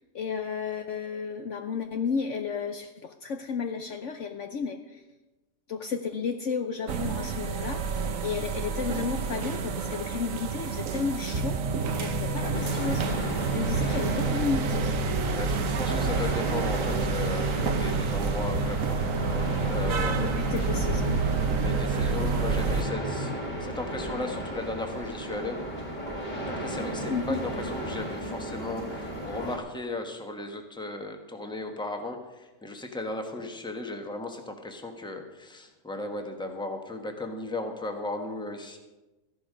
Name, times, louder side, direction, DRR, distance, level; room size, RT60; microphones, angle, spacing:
voice 1, 0.1-5.0 5.7-7.8 8.2-11.6 11.9-13.0 13.5-15.0 20.2-21.4 27.1-27.4, left 6 dB, 60° left, 6 dB, 1.0 m, -32 dB
sound 1, 6.9-22.8, right 6 dB, 65° right, 1.2 m, -30 dB
sound 2, 11.3-23.3, right 1 dB, 45° right, 2.1 m, -33 dB
sound 3, 12.5-29.6, right 1 dB, 30° left, 2.2 m, -35 dB
voice 2, 13.7-14.0 15.3-19.3 19.7-20.4 21.6-23.3 23.6-25.6 26.5-38.8, left 2 dB, 5° left, 4 dB, 1.2 m, -36 dB
14.0 x 11.5 x 5.1 m, 1.1 s
omnidirectional pair, 1.6 m